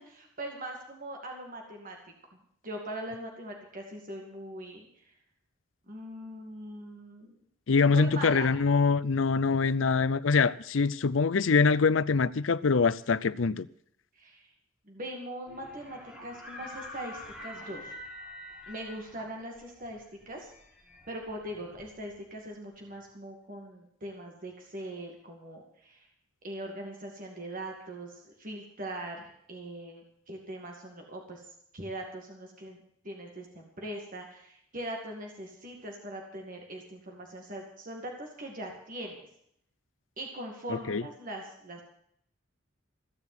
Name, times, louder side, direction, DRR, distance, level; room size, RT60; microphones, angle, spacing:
voice 1, 0.0-2.0 2.6-5.0 5.9-7.4 7.9-8.5 14.1-14.5 14.9-18.0 18.7-20.5 21.1-26.1 26.4-31.4 31.7-39.3 40.2-41.8, right 1 dB, 45° right, 2.4 m, -41 dB
voice 2, 7.7-13.7 40.7-41.0, left 4 dB, 75° left, 0.6 m, -24 dB
sound 1, 15.5-22.3, left 1 dB, 5° right, 4.6 m, -46 dB
15.5 x 7.0 x 9.7 m
head